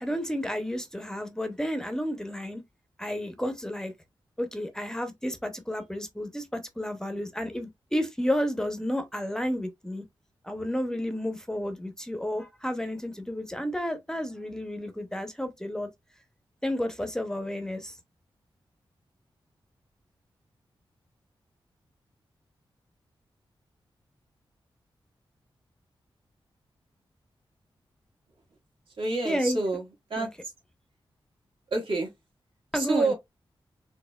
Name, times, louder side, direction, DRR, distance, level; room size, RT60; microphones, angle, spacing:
voice 1, 0.0-2.6 3.0-3.9 4.4-10.0 10.4-15.9 16.6-18.0 29.2-29.6 30.2-30.3 32.7-33.1, equal, 5° left, 0.5 m, -31 dB
voice 2, 29.0-29.8 30.1-30.3 31.7-32.1 32.7-33.1, right 3 dB, 75° right, 1.7 m, -27 dB
4.2 x 3.0 x 2.2 m
wide cardioid pair, 150°, 9 cm